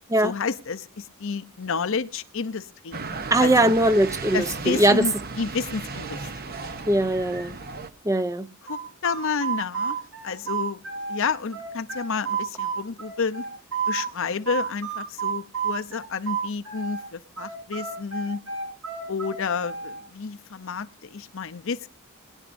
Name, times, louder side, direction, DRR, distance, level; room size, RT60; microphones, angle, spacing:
voice 1, 0.2-3.0 3.4-3.7 4.3-6.6 8.7-10.0 10.2-10.8 11.1-13.5 13.9-18.4 19.1-21.9, left 5 dB, 65° left, 0.7 m, -30 dB
sound 1, 2.9-7.9, right 4 dB, 45° right, 0.8 m, -35 dB
voice 2, 3.3-5.1 6.9-7.6 8.0-8.5, right 1 dB, 15° right, 0.7 m, -20 dB
sound 2, 8.7-11.2 11.5-14.1 14.5-17.0 17.4-20.0, right 6 dB, 90° right, 7.9 m, -30 dB
20.5 x 11.0 x 2.6 m
head